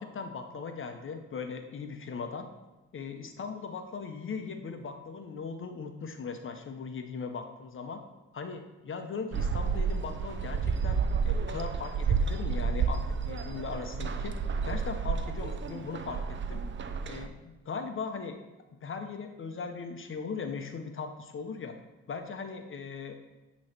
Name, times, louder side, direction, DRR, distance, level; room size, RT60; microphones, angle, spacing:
voice 1, 0.0-2.5 2.9-8.0 8.3-14.3 14.6-16.2 16.5-16.6 17.1-18.4 18.8-21.8 22.1-23.2, left 5 dB, 40° left, 6 dB, 0.9 m, -39 dB
sound 1, 9.3-17.3, right 5 dB, 40° right, 0.6 m, -31 dB
9.2 x 3.2 x 5.9 m, 1.1 s
cardioid pair, 90°, 30 cm